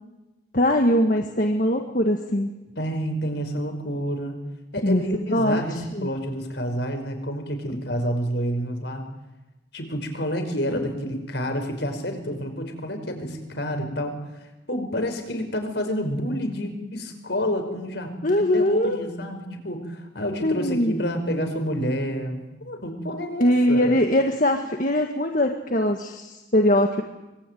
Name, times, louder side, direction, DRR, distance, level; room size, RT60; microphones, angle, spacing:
voice 1, 0.5-2.5 4.8-5.0 5.3-6.1 18.2-19.0 20.4-20.9 23.4-27.0, left 1 dB, 45° left, 4 dB, 1.8 m, -21 dB
voice 2, 2.8-4.4 4.7-9.0 9.7-14.1 14.7-24.0, equal, 65° left, 6 dB, 5.3 m, -29 dB
25.5 x 22.5 x 9.4 m, 1.1 s
head